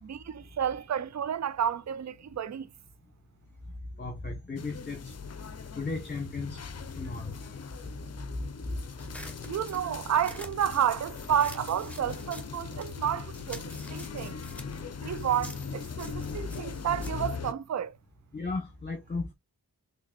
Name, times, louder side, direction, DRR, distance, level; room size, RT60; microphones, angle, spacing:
voice 1, 0.0-2.7 9.5-13.6 13.9-14.4 15.0-18.0, right 9 dB, 45° right, 0.5 m, -30 dB
voice 2, 4.0-5.2 5.7-6.6 6.9-7.4 18.3-19.3, left 3 dB, 25° left, 1.2 m, -35 dB
sound 1, 4.6-17.5, left 5 dB, 40° left, 0.6 m, -40 dB
sound 2, 9.0-13.0 13.3-18.1, left 1 dB, 5° left, 1.2 m, -48 dB
3.9 x 3.4 x 2.4 m
cardioid pair, 45°, 40 cm